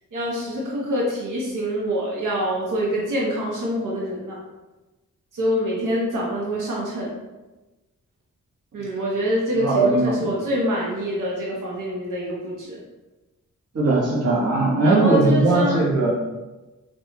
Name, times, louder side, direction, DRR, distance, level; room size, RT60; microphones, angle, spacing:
voice 1, 0.1-4.4 5.3-7.1 8.7-12.8 14.8-15.8, equal, 85° right, -4 dB, 0.8 m, -25 dB
voice 2, 9.5-10.3 13.7-16.1, right 2 dB, 55° right, -5 dB, 1.0 m, -19 dB
4.2 x 2.3 x 2.8 m, 1.1 s
wide cardioid pair, 110°, 31 cm